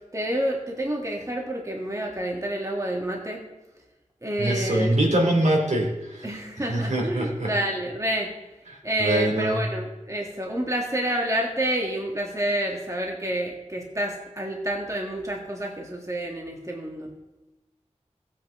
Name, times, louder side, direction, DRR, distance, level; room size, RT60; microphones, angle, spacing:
voice 1, 0.1-3.4 4.2-5.0 6.2-8.3 8.8-17.1, right 1 dB, 25° right, 0 dB, 1.8 m, -29 dB
voice 2, 4.4-7.5 8.7-9.6, right 1 dB, 70° right, -1 dB, 2.7 m, -24 dB
15.0 x 8.3 x 3.7 m, 1.0 s
wide cardioid pair, 40°, 13 cm